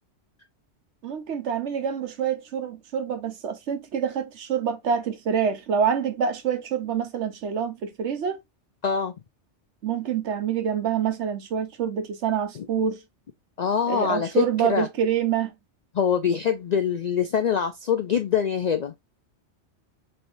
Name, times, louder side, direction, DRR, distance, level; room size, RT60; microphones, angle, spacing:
voice 1, 1.0-8.4 9.8-13.0 13.9-15.5, right 7 dB, 75° right, 1.1 m, -26 dB
voice 2, 8.8-9.1 12.6-12.7 13.6-14.9 15.9-18.9, left 7 dB, 65° left, 0.4 m, -24 dB
4.2 x 3.3 x 2.5 m
omnidirectional pair, 1.2 m